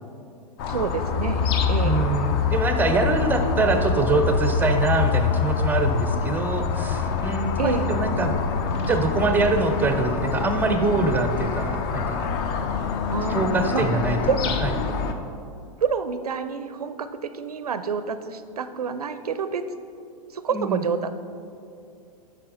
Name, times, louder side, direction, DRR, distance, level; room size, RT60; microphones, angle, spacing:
sound 1, 0.6-15.1, left 5 dB, 40° left, 0.5 m, -25 dB
voice 1, 0.7-2.1 7.6-7.9 13.1-13.4 13.7-13.9 14.2-14.4 15.8-19.7 20.3-21.1, right 6 dB, 75° right, 11 dB, 0.4 m, -28 dB
voice 2, 1.8-8.4 8.7-12.3 13.3-14.2 14.6-14.7 20.5-20.9, right 3 dB, 10° right, 6 dB, 0.5 m, -24 dB
8.5 x 5.5 x 3.7 m, 2.5 s
figure-of-eight pair, 100°, 20 cm